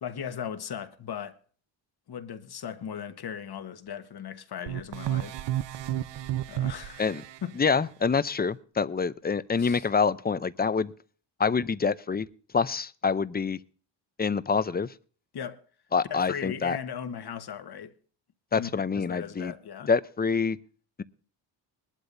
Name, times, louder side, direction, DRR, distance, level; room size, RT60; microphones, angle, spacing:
voice 1, 0.0-1.4 2.1-5.4 6.5-7.1 7.4-7.5 9.6-9.8 15.3-15.6 16.1-17.9 18.5-19.9, left 8 dB, 55° left, 1.4 m, -37 dB
sound 1, 4.7-7.4, right 13 dB, 70° right, 0.7 m, -31 dB
voice 2, 7.5-10.9 11.4-12.3 12.5-13.6 14.2-14.9 15.9-16.8 18.5-19.5 19.9-20.6, left 5 dB, 20° left, 0.5 m, -26 dB
20.5 x 11.5 x 2.6 m
cardioid pair, 100°, 45 cm